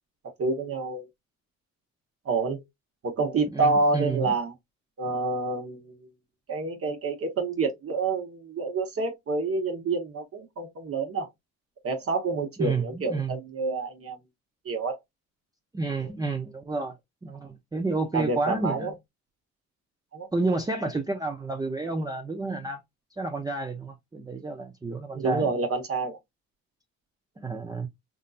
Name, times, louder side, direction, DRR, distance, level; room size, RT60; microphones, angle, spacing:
voice 1, 0.4-1.1 2.2-2.6 3.0-4.5 5.0-6.1 6.5-11.3 11.8-14.2 14.6-15.0 16.0-16.1 18.1-18.9 20.1-20.3 25.1-26.2, right 3 dB, 50° right, 1.1 m, -28 dB
voice 2, 3.5-4.3 12.6-13.4 15.7-16.9 17.2-18.9 20.3-22.8 23.2-25.5 27.4-27.9, right 3 dB, 15° right, 0.5 m, -30 dB
3.6 x 2.6 x 2.3 m
cardioid pair, 90°, 30 cm